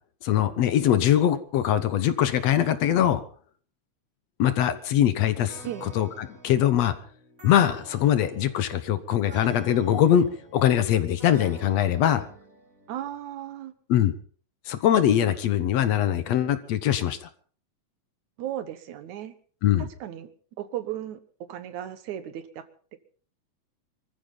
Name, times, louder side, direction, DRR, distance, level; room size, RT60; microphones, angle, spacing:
voice 1, 0.2-3.2 4.4-6.9 7.4-10.3 10.5-12.3 13.9-14.1 14.7-17.3 19.6-19.9, left 10 dB, 70° left, 12 dB, 2.2 m, -22 dB
sound 1, 5.5-13.1, right 1 dB, 30° right, 2.6 m, -48 dB
voice 2, 12.9-13.7 18.4-19.3 20.0-20.3 20.6-21.2 21.5-22.7, right 11 dB, 80° right, 11 dB, 2.6 m, -35 dB
24.5 x 14.5 x 4.0 m, 0.43 s
omnidirectional pair, 3.3 m